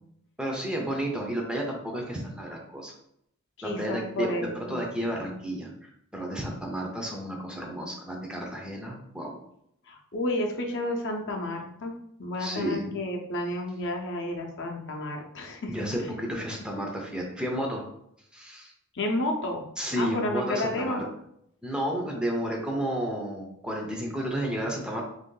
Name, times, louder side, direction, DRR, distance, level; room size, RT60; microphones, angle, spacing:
voice 1, 0.4-2.9 3.6-9.4 12.4-12.9 15.7-17.8 18.3-18.7 19.8-21.0 21.6-25.0, equal, 5° right, -1 dB, 0.5 m, -32 dB
voice 2, 3.6-4.8 9.9-16.1 18.9-19.6 20.0-21.0, left 1 dB, 60° left, 1 dB, 0.6 m, -31 dB
3.0 x 2.6 x 3.7 m, 0.74 s
head